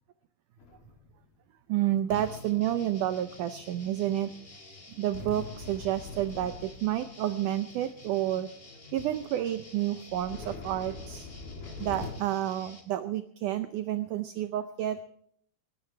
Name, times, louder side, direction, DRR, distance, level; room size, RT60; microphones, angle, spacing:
sound 1, 0.6-1.2 2.1-3.4 5.1-7.3 8.1-8.2 8.7-8.8 9.0-9.3 10.1-12.1, left 3 dB, 70° left, 3.9 m, -43 dB
voice 1, 1.7-4.3 5.0-8.5 8.9-11.3 11.8-15.0, right 12 dB, 80° right, 10 dB, 1.9 m, -30 dB
sound 2, 2.1-12.8, left 1 dB, 20° left, 2.0 m, -51 dB
19.5 x 17.5 x 3.4 m, 0.65 s
omnidirectional pair, 4.3 m